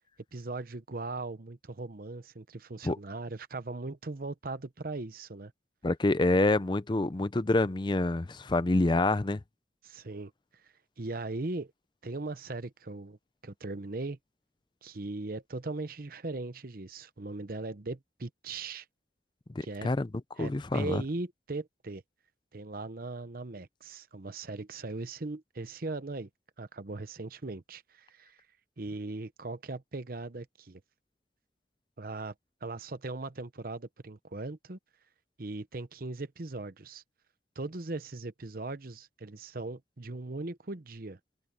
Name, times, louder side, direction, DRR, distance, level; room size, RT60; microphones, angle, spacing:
voice 1, 0.3-5.5 9.8-10.3 11.0-11.7 12.0-13.2 13.4-14.2 14.8-18.8 19.6-19.9 20.4-22.0 22.5-26.3 26.6-28.4 28.8-30.8 32.0-32.3 32.6-34.8 35.4-37.0 37.6-41.2, right 2 dB, 50° right, 0.9 m, -39 dB
voice 2, 5.8-9.4 19.5-20.1 20.4-21.0, left 2 dB, 25° left, 0.5 m, -27 dB
head